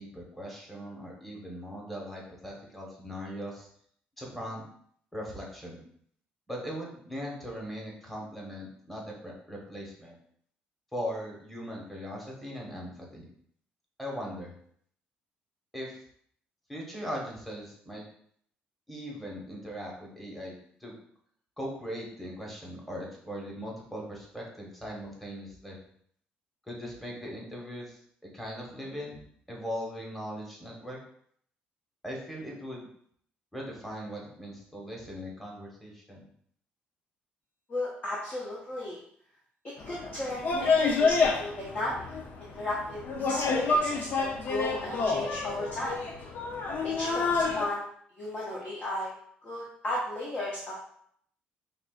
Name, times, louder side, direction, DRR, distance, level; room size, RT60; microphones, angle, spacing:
voice 1, 0.0-3.7 4.2-4.6 5.1-5.8 6.5-10.1 10.9-13.2 14.0-14.5 15.7-16.0 16.7-18.0 18.9-21.0 21.6-25.8 26.7-28.0 28.3-29.2 29.5-31.0 32.0-32.9 33.5-36.3, equal, 5° left, -3 dB, 1.2 m, -39 dB
voice 2, 37.7-39.0 39.9-42.1 42.4-43.0 43.3-46.0 46.8-47.8 48.2-49.1 49.4-50.8, left 1 dB, 35° left, -5 dB, 0.9 m, -34 dB
sound 1, 39.8-47.7, left 4 dB, 55° left, 0.6 m, -28 dB
5.3 x 2.5 x 2.4 m, 0.65 s
cardioid pair, 100°, 4 cm